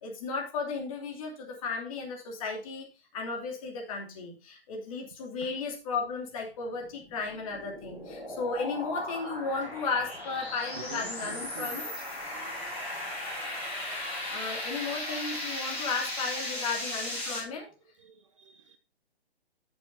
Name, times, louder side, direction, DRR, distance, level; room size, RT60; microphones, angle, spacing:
voice 1, 0.0-2.9 3.1-11.9 14.3-17.7, left 4 dB, 35° left, 2.8 m, -34 dB
sound 1, 6.8-17.4, left 1 dB, 5° left, 5.7 m, -37 dB
voice 2, 10.8-11.7 18.0-18.8, right 7 dB, 30° right, 0.6 m, -46 dB
13.5 x 6.9 x 2.7 m
figure-of-eight pair, 130°, 32 cm